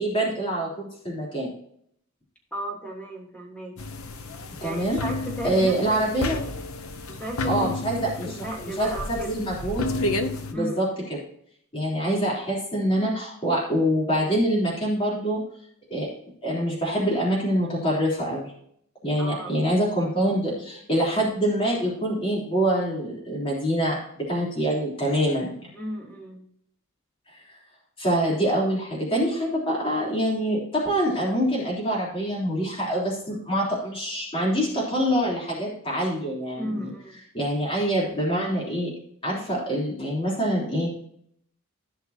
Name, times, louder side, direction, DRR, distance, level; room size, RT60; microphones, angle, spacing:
voice 1, 0.0-1.5 4.6-5.0 5.4-6.4 7.5-8.3 8.8-9.9 10.5-11.2 11.7-15.4 15.9-16.1 16.4-18.5 19.0-25.7 27.3-27.4 28.0-36.9 37.3-38.9 39.2-40.9, right 1 dB, 25° left, -5 dB, 3.4 m, -25 dB
voice 2, 2.5-3.7 4.6-5.7 6.1-6.5 7.1-7.9 8.2-9.3 10.5-11.0 19.2-19.7 25.7-26.4 36.6-37.2, right 1 dB, 5° left, -2 dB, 3.0 m, -35 dB
sound 1, 3.8-10.5, left 2 dB, 70° left, 1.1 m, -31 dB
16.0 x 5.8 x 2.8 m, 0.66 s
head